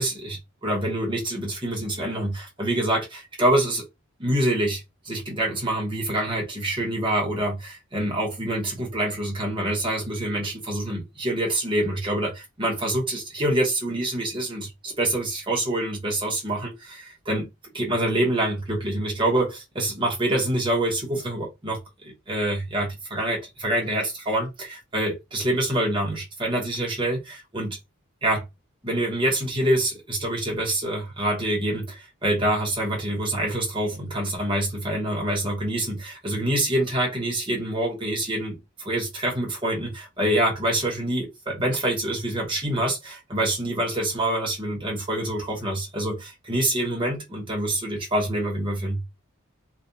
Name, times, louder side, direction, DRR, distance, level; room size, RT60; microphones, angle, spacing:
voice 1, 0.0-3.8 4.2-17.5 17.7-27.8 28.2-28.4 28.8-49.0, right 1 dB, 20° right, 0.9 m, -26 dB
2.7 x 2.3 x 2.4 m
head